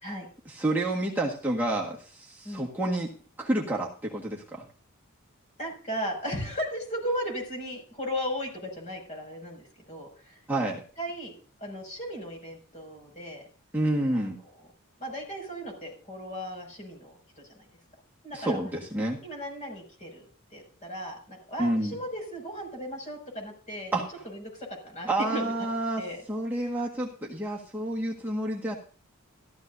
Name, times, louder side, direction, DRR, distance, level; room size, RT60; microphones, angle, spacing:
voice 1, 0.4-3.1 3.4-4.6 10.5-10.8 13.7-14.4 18.3-19.2 21.6-22.0 23.9-24.0 25.1-28.8, right 1 dB, 10° right, -3 dB, 1.6 m, -29 dB
voice 2, 5.6-10.4 11.0-11.3 11.6-13.4 14.1-14.3 15.0-17.6 18.2-18.6 19.2-23.9 24.2-25.5 26.0-26.2, equal, 35° left, 2 dB, 6.4 m, -36 dB
14.5 x 14.0 x 2.7 m, 0.39 s
head